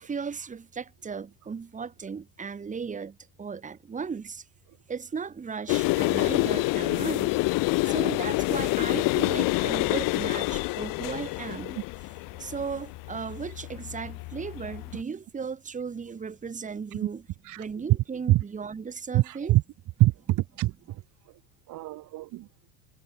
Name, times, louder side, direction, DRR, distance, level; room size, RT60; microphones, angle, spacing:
voice 1, 0.0-4.4 4.9-7.3 7.8-17.3 17.6-19.6, right 5 dB, 20° right, 1.7 m, -36 dB
sound 1, 5.7-15.0, left 24 dB, 50° left, 0.7 m, -27 dB
voice 2, 19.1-19.6 20.0-20.7 21.7-22.4, right 17 dB, 45° right, 1.1 m, -24 dB
supercardioid pair, 115°, 41 cm